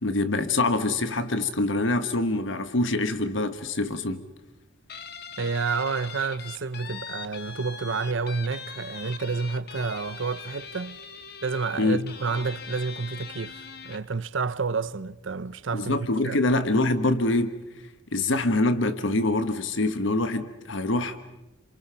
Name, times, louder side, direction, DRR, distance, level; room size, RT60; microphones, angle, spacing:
voice 1, 0.0-4.2 11.8-12.0 15.7-17.6 18.1-21.2, left 2 dB, 75° left, 1.2 m, -25 dB
Guitar, 4.9-14.1, left 6 dB, 55° left, 1.5 m, -41 dB
voice 2, 5.4-11.0 11.4-13.6 13.8-16.4, right 4 dB, 75° right, 0.8 m, -29 dB
28.0 x 28.0 x 5.8 m
head